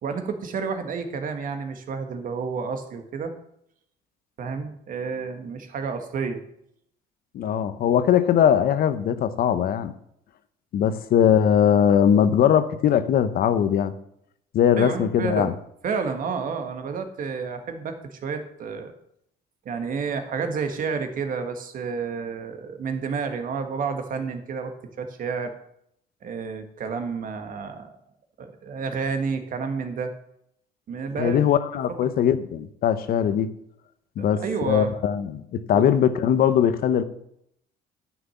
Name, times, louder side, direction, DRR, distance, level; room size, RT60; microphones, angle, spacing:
voice 1, 0.0-3.3 4.4-6.4 14.7-15.5 15.8-18.9 19.6-25.5 26.2-27.9 28.4-30.1 30.9-31.5 34.2-34.9 35.7-35.8, right 5 dB, 55° right, 7 dB, 1.5 m, -30 dB
voice 2, 7.3-9.9 10.7-13.9 14.5-15.5 31.2-33.5 34.2-37.0, left 9 dB, 60° left, 12 dB, 0.8 m, -20 dB
9.8 x 6.2 x 7.0 m, 0.73 s
cardioid pair, 110°, 17 cm